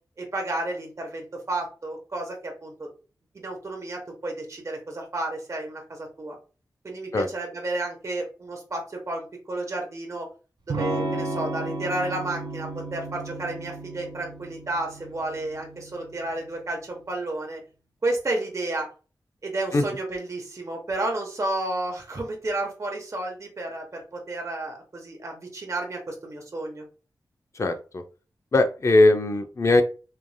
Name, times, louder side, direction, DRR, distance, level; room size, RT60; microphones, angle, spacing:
voice 1, 0.2-2.9 3.3-6.4 6.8-10.3 10.7-17.6 18.0-18.9 19.4-26.8, right 2 dB, 40° right, 1 dB, 0.8 m, -31 dB
Electric guitar / Strum, 10.7-16.4, right 2 dB, 90° right, 1.4 m, -33 dB
voice 2, 27.5-28.0 28.5-29.8, left 2 dB, 40° left, 6 dB, 0.5 m, -20 dB
3.2 x 2.5 x 2.3 m, 0.35 s
wide cardioid pair, 90°, 8 cm